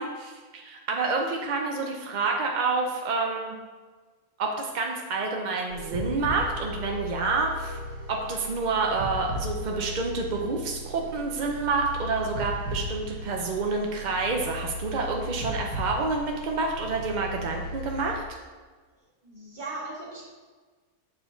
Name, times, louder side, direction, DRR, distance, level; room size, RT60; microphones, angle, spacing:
voice 1, 0.0-3.5 4.4-7.8 8.1-18.2, right 3 dB, 65° right, 1 dB, 0.4 m, -28 dB
sound 1, 5.7-18.2, equal, 85° right, 1.7 m, -36 dB
voice 2, 19.2-20.3, right 2 dB, 30° right, -6 dB, 1.9 m, -38 dB
7.0 x 4.3 x 3.8 m, 1.4 s
omnidirectional pair, 1.6 m